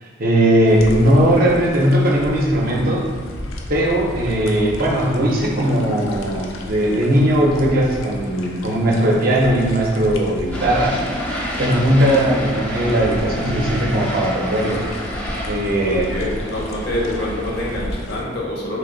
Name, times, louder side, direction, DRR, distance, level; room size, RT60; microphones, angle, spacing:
voice 1, 0.0-3.1 3.7-11.0 11.6-14.8 15.5-16.1, right 1 dB, 45° right, -2 dB, 0.6 m, -18 dB
sound 1, 0.7-18.2, left 1 dB, 85° left, 0.5 m, -33 dB
sound 2, 10.5-17.8, equal, 5° left, 0.4 m, -29 dB
voice 2, 15.9-18.8, left 1 dB, 55° left, -3 dB, 0.8 m, -26 dB
3.4 x 2.6 x 3.8 m, 1.5 s
head